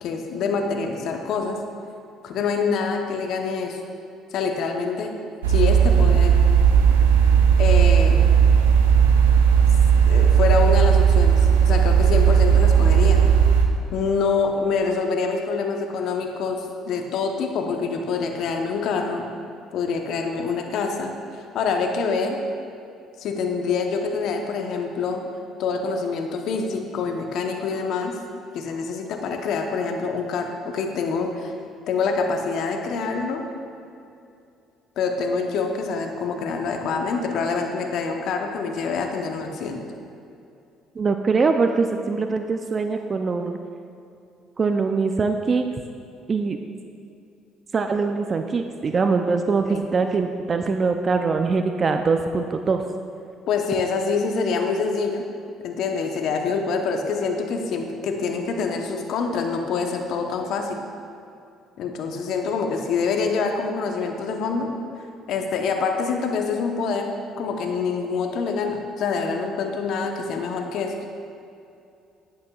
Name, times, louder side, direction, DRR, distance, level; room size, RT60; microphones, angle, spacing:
voice 1, 0.0-1.6 2.2-3.8 4.3-5.1 5.5-6.3 7.6-8.3 10.1-13.2 13.9-19.3 19.7-22.4 23.2-25.2 25.6-28.1 28.5-31.6 31.9-33.4 35.0-39.8 49.7-49.8 53.5-55.2 55.6-60.8 61.8-64.7 65.3-70.9, left 5 dB, 65° left, 3 dB, 0.9 m, -26 dB
sound 1, 5.4-13.6, right 7 dB, 90° right, 0.5 m, -16 dB
voice 2, 41.0-43.6 44.6-45.6 46.3-46.6 47.7-52.8, right 4 dB, 40° right, 6 dB, 0.4 m, -22 dB
11.0 x 8.4 x 2.4 m, 2.6 s
hypercardioid pair, 55°, 0 cm